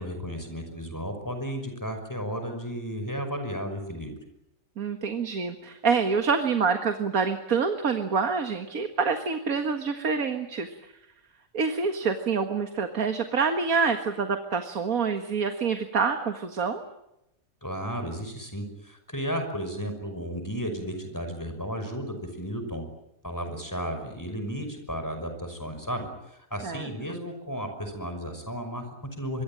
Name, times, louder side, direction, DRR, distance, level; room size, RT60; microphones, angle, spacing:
voice 1, 0.0-4.1 17.6-22.8 23.2-29.4, equal, 15° left, 6 dB, 5.7 m, -34 dB
voice 2, 4.8-10.7 11.5-16.8 26.6-26.9, right 5 dB, 85° right, 7 dB, 2.1 m, -26 dB
26.0 x 23.0 x 8.9 m, 0.84 s
omnidirectional pair, 1.5 m